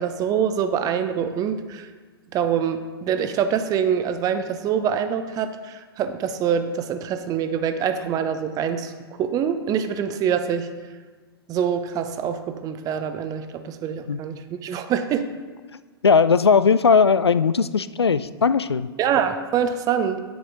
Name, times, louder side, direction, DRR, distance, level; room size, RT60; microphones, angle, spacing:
voice 1, 0.0-1.9 2.3-8.9 9.2-10.7 11.5-15.3 19.0-20.2, right 8 dB, 30° right, 9 dB, 0.8 m, -25 dB
voice 2, 16.0-18.9, left 5 dB, 90° left, 14 dB, 0.4 m, -18 dB
10.0 x 7.0 x 3.8 m, 1.4 s
figure-of-eight pair, 105°, 13 cm